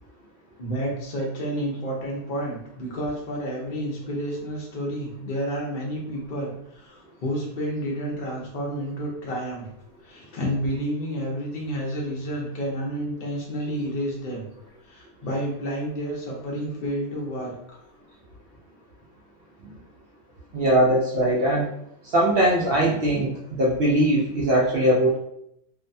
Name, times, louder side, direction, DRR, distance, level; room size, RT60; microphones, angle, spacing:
voice 1, 0.6-9.7 10.0-14.4 14.8-17.5, equal, 50° left, -2 dB, 0.7 m, -30 dB
voice 2, 20.5-21.7 22.0-23.3 23.6-25.2, right 1 dB, 70° right, -4 dB, 0.5 m, -20 dB
2.6 x 2.1 x 2.6 m, 0.75 s
omnidirectional pair, 1.5 m